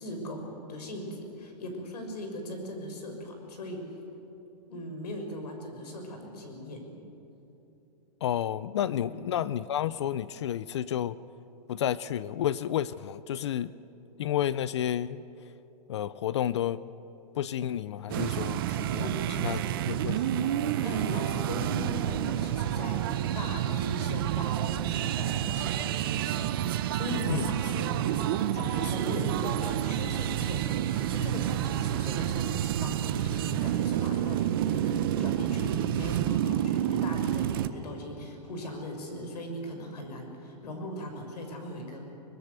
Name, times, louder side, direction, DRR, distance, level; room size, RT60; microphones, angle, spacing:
voice 1, 0.0-3.8 4.7-7.0 9.0-9.3 19.0-19.3 20.8-23.1 23.3-42.1, left 1 dB, 75° left, 4 dB, 6.0 m, -39 dB
voice 2, 8.2-11.2 11.7-13.7 14.2-15.2 15.9-16.8 17.3-19.1 19.4-20.5 27.3-27.5, left 11 dB, 45° left, 18 dB, 0.4 m, -31 dB
sound 1, 18.1-37.7, right 11 dB, 35° right, 0.7 m, -29 dB
23.5 x 20.5 x 8.2 m, 3.0 s
hypercardioid pair, 175°, 21 cm